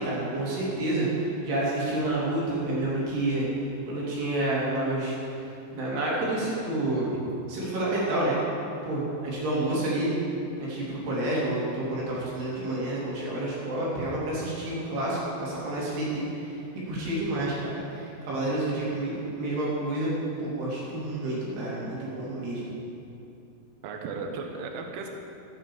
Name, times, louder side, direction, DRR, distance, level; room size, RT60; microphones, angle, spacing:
voice 1, 0.0-7.2 7.5-8.4 8.8-10.1 10.6-16.6 16.9-20.1 20.4-22.7, right 1 dB, 55° right, -6 dB, 4.9 m, -29 dB
voice 2, 23.8-25.1, right 4 dB, 90° right, 3 dB, 1.9 m, -36 dB
14.5 x 9.3 x 7.3 m, 2.7 s
omnidirectional pair, 5.7 m